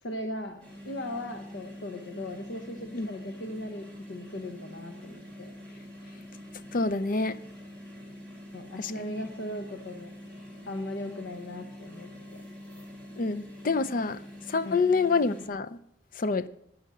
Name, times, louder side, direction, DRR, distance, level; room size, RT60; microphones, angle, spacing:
voice 1, 0.0-5.5 8.5-10.1 10.7-12.4 14.6-14.8, left 1 dB, 80° left, 1.0 m, -38 dB
sound 1, 0.6-15.5, left 1 dB, 5° left, 3.1 m, -46 dB
voice 2, 6.7-7.4 8.8-9.3 13.2-14.2 14.5-15.8 16.2-16.5, left 4 dB, 50° left, 0.5 m, -27 dB
11.5 x 9.5 x 6.1 m
head